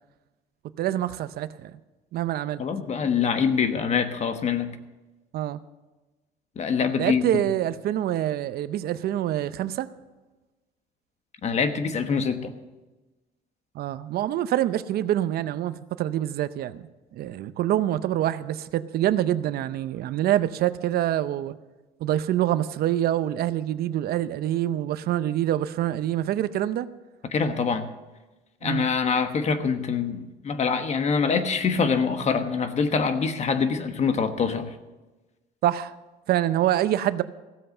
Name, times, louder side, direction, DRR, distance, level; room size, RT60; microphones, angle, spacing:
voice 1, 0.8-1.7 2.1-2.6 5.3-5.6 7.0-9.9 13.7-21.6 22.0-26.9 28.6-28.9 35.6-36.0 36.3-37.2, right 12 dB, 65° right, 14 dB, 0.6 m, -26 dB
voice 2, 2.6-4.8 6.6-7.4 11.4-12.5 27.3-27.9 28.6-34.7, left 5 dB, 40° left, 9 dB, 1.2 m, -25 dB
15.5 x 7.8 x 6.7 m, 1.2 s
cardioid pair, 110°, 17 cm